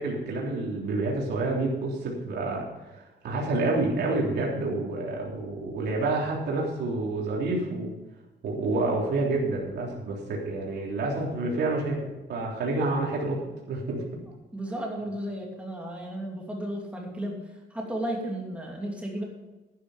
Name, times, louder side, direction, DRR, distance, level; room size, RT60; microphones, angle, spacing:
voice 1, 0.0-2.6 2.9-7.9 8.4-12.0 12.3-13.4 13.7-14.0, right 2 dB, 70° right, -2 dB, 3.4 m, -28 dB
voice 2, 14.5-17.4 17.7-19.2, right 1 dB, 5° right, -2 dB, 2.8 m, -33 dB
12.0 x 9.6 x 5.1 m, 1.1 s
cardioid pair, 160°, 18 cm